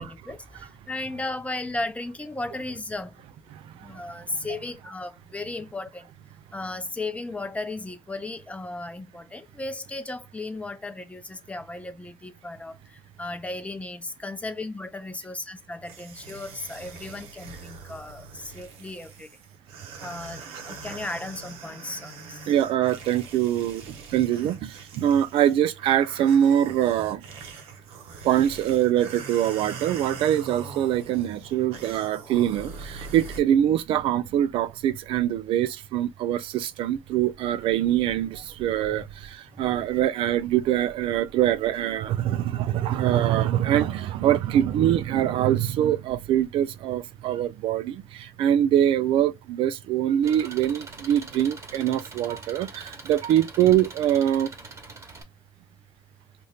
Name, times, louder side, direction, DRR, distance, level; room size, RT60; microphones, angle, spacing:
voice 1, 0.0-3.1 3.7-6.1 6.5-19.3 20.0-22.5 39.6-39.8, left 2 dB, 15° left, 0.7 m, -35 dB
sound 1, 15.8-33.4, right 5 dB, 90° right, 0.8 m, -42 dB
voice 2, 22.5-27.2 28.2-54.5, right 11 dB, 70° right, 0.4 m, -24 dB
Engine, 50.2-55.2, right 3 dB, 30° right, 1.1 m, -43 dB
2.7 x 2.5 x 3.3 m
supercardioid pair, 80°, 9 cm